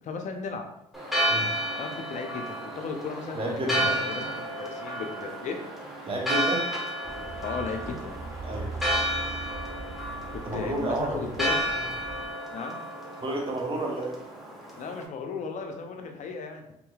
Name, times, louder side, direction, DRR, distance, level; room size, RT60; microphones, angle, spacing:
voice 1, 0.0-0.7 1.8-5.6 7.4-8.4 10.3-11.6 12.5-12.8 14.8-16.6, left 5 dB, 55° left, 4 dB, 0.6 m, -35 dB
Church bell, 0.9-15.0, right 1 dB, ahead, 1.2 m, -32 dB
voice 2, 3.3-4.0 6.1-6.7 8.4-8.7 10.4-11.3 13.2-14.2, right 1 dB, 35° right, 0 dB, 0.9 m, -31 dB
sound 1, 7.0-12.3, right 3 dB, 20° right, 0.4 m, -40 dB
3.6 x 3.0 x 2.4 m, 0.81 s
supercardioid pair, 65°, 15 cm